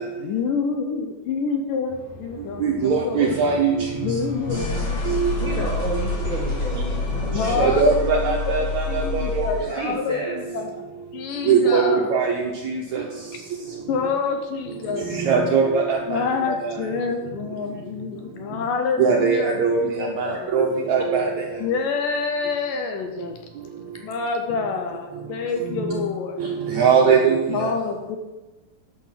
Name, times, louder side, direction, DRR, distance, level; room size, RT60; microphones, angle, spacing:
voice 1, 0.2-3.3 4.0-5.8 7.3-10.9 11.1-12.1 13.9-15.2 16.1-20.5 21.6-23.4 23.9-26.6 27.5-28.2, left 5 dB, 75° left, 4 dB, 2.4 m, -27 dB
sound 1, 1.9-9.7, left 3 dB, 55° left, 3.3 m, -28 dB
voice 2, 2.6-3.9 4.5-4.7 5.1-5.3 7.4-9.8 11.5-13.0 15.0-16.2 16.6-16.7 19.0-21.3 25.6-26.0 26.4-27.7, right 5 dB, 70° right, 0 dB, 1.8 m, -21 dB
voice 3, 5.4-7.7 9.8-10.4, right 2 dB, 15° left, -3 dB, 2.4 m, -31 dB
10.5 x 6.6 x 5.9 m, 1.1 s
omnidirectional pair, 4.2 m